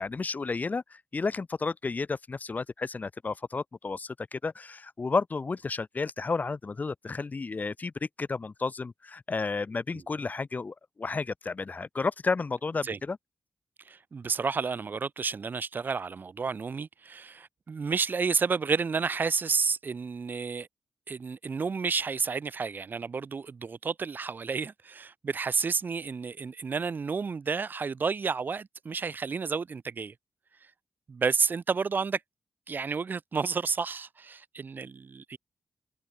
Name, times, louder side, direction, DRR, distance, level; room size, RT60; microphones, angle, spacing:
voice 1, 0.0-13.2, left 4 dB, 45° left, 5.9 m, -32 dB
voice 2, 13.9-20.7 21.1-30.1 31.1-32.2 32.7-35.4, right 5 dB, 55° right, 4.0 m, -31 dB
cardioid pair, 50°, 4 cm